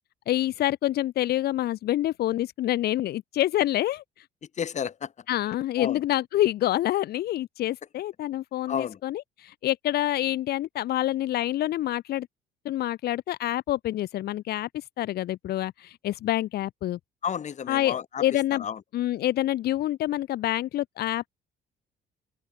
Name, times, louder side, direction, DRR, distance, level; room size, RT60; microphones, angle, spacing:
voice 1, 0.3-4.3 5.3-12.3 12.7-17.0 17.7-18.6 18.9-21.3, left 14 dB, 70° left, 3.5 m, -27 dB
voice 2, 4.6-5.1 5.8-6.0 8.7-9.0 17.2-18.8, left 8 dB, 45° left, 7.4 m, -32 dB
open air
cardioid pair, 110°, 17 cm